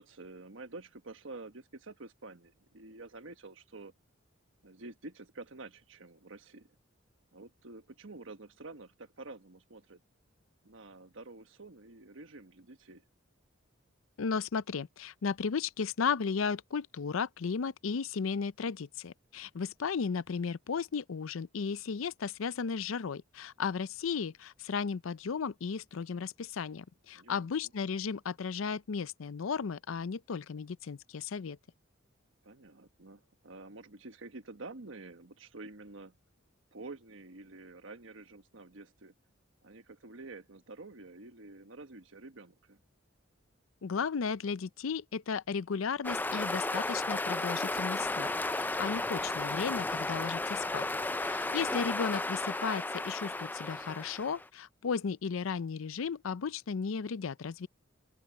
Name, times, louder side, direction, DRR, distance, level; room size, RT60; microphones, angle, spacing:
voice 1, 0.0-3.9 4.6-6.8 7.3-10.0 10.6-13.0 27.1-27.7 32.4-36.1 36.7-39.1 39.6-42.8 51.4-51.7, right 3 dB, 70° right, 1.3 m, -49 dB
voice 2, 14.2-31.6 43.8-50.9 51.2-57.7, left 5 dB, 85° left, 0.5 m, -35 dB
sound 1, 46.0-54.4, left 2 dB, 10° left, 0.4 m, -34 dB
open air
head